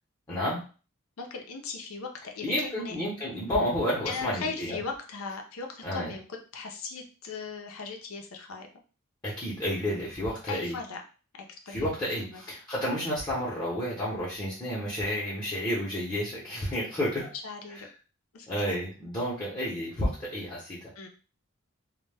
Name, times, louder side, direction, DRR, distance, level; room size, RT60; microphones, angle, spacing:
voice 1, 0.3-0.6 2.4-4.8 5.8-6.1 9.2-10.8 11.7-17.3 18.5-20.9, equal, 20° left, -7 dB, 0.7 m, -31 dB
voice 2, 1.2-3.0 4.1-6.2 6.5-8.7 10.5-11.0 11.7-12.4 17.4-17.9 18.3-18.8 21.0-21.1, left 4 dB, 75° left, 3 dB, 0.5 m, -38 dB
2.1 x 2.1 x 3.3 m, 0.36 s
head